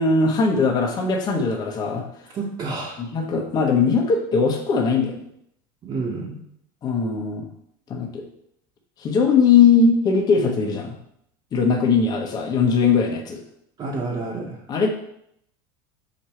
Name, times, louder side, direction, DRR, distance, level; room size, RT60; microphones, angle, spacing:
voice 1, 0.0-2.0 3.0-5.2 6.8-7.5 7.9-8.2 9.0-11.0 11.5-13.4 14.7-14.9, left 5 dB, 35° left, 1 dB, 1.3 m, -20 dB
voice 2, 2.3-3.0 5.8-6.4 13.8-14.6, right 3 dB, 35° right, -5 dB, 1.4 m, -29 dB
6.5 x 4.8 x 4.6 m, 0.72 s
supercardioid pair, 125°, 12 cm